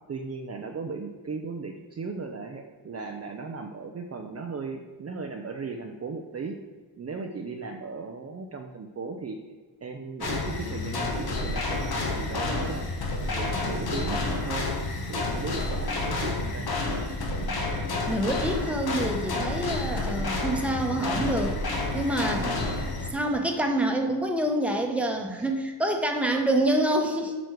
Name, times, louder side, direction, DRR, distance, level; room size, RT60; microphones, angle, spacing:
voice 1, 0.1-6.6 7.0-9.4 9.8-14.7 15.1-16.7 22.2-22.9, right 4 dB, 30° right, 2 dB, 0.7 m, -37 dB
sound 1, 10.2-23.1, left 2 dB, 55° left, 1.7 m, -29 dB
voice 2, 18.1-21.5 21.9-22.4 23.1-27.3, right 1 dB, 5° right, 2 dB, 1.2 m, -26 dB
9.4 x 6.3 x 4.6 m, 1.4 s
wide cardioid pair, 150°, 46 cm